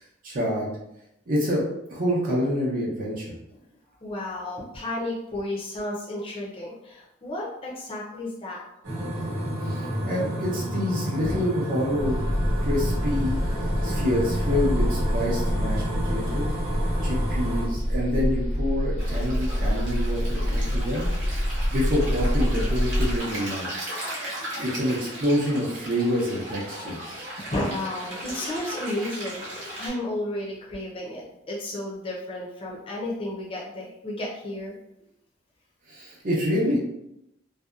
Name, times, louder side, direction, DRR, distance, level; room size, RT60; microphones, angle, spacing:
voice 1, 0.2-0.7 1.3-1.6 1.9-3.3 9.6-12.2 12.6-16.5 17.0-23.9 24.3-27.2 35.9-36.8, equal, 45° right, -5 dB, 0.6 m, -27 dB
voice 2, 4.0-8.6 11.2-11.4 27.5-34.7, left 1 dB, 30° left, -4 dB, 0.5 m, -32 dB
sound 1, 8.8-17.7, equal, 80° right, 0.9 m, -30 dB
sound 2, 12.0-23.2, equal, 70° left, 0.6 m, -26 dB
Stream, 19.0-29.9, right 1 dB, 60° right, 0.9 m, -37 dB
2.7 x 2.1 x 2.3 m, 0.84 s
head